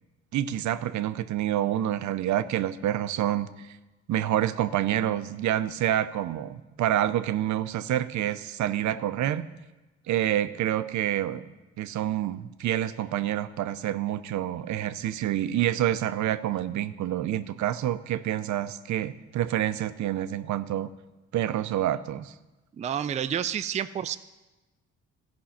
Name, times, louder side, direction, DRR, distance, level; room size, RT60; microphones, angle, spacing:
voice 1, 0.3-3.8 4.1-9.5 10.1-11.5 11.8-20.9 21.3-22.3, right 12 dB, 70° right, 13 dB, 0.6 m, -28 dB
voice 2, 22.8-24.2, right 9 dB, 25° right, 11 dB, 0.3 m, -29 dB
14.0 x 5.3 x 5.7 m, 1.1 s
cardioid pair, 90°, 30 cm